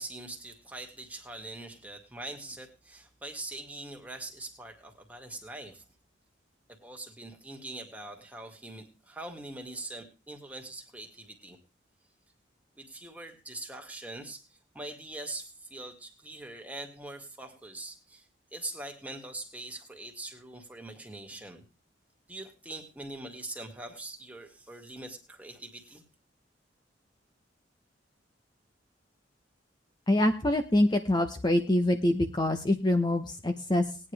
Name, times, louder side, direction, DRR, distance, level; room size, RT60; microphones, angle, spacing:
voice 1, 0.0-5.8 6.8-11.6 12.8-18.3 18.5-21.6 22.3-26.0, right 2 dB, 10° right, 3 dB, 2.1 m, -43 dB
voice 2, 30.1-34.0, left 1 dB, 25° left, 6 dB, 0.9 m, -25 dB
19.0 x 9.8 x 3.4 m, 0.33 s
head